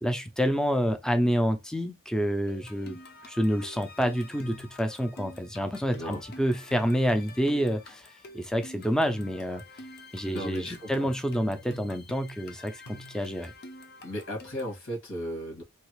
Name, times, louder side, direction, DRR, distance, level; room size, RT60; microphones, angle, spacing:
voice 1, 0.0-3.0 3.3-8.1 8.3-9.6 10.1-13.5, equal, 5° left, 0.4 m, -28 dB
sound 1, 2.5-14.8, left 2 dB, 50° left, 0.5 m, -47 dB
voice 2, 5.9-6.2 10.2-11.1 14.0-15.6, equal, 80° left, 1.8 m, -36 dB
3.2 x 2.4 x 3.1 m
head